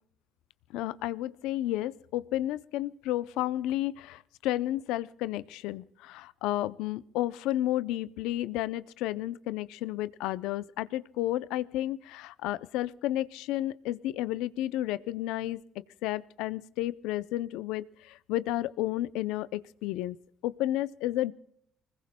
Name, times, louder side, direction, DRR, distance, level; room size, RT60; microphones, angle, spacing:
voice 1, 0.7-15.6 16.0-17.9 18.3-20.2 20.4-21.3, left 14 dB, 85° left, 17 dB, 0.5 m, -32 dB
24.5 x 20.5 x 2.2 m, 0.70 s
supercardioid pair, 75°, 0 cm